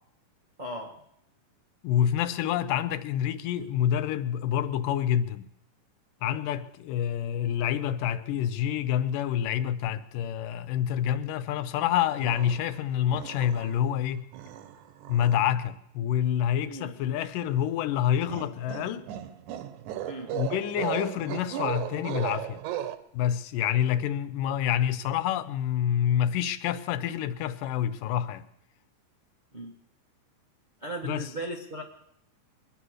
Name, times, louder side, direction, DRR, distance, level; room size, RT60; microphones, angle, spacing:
voice 1, 0.6-1.0 16.7-17.0 20.1-20.3 29.5-29.7 30.8-31.8, right 1 dB, 55° right, 0.5 m, -37 dB
voice 2, 1.8-5.5 6.2-14.2 15.1-19.1 20.3-22.6 23.1-28.4 31.0-31.3, left 10 dB, 80° left, 2.4 m, -27 dB
sound 1, 12.2-12.8 13.1-13.9 14.3-15.5 18.3-23.0, right 12 dB, 75° right, 2.1 m, -36 dB
23.0 x 9.8 x 6.4 m
omnidirectional pair, 3.8 m